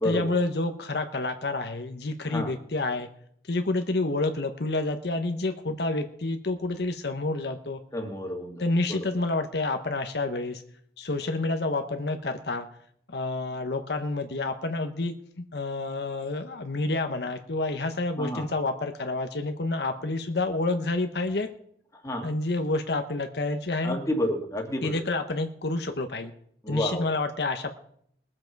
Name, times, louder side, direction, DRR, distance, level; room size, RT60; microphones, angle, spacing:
voice 1, 0.0-3.1 3.4-7.8 8.6-10.6 11.0-12.7 13.1-21.5 22.2-24.0 24.8-26.3 26.7-27.7, left 2 dB, 65° left, 6 dB, 0.9 m, -29 dB
voice 2, 7.9-8.6 8.9-9.0 18.2-18.5 22.0-22.3 23.8-25.0 26.6-27.1, left 1 dB, 15° left, 2 dB, 1.8 m, -30 dB
20.5 x 7.6 x 4.6 m, 0.66 s
head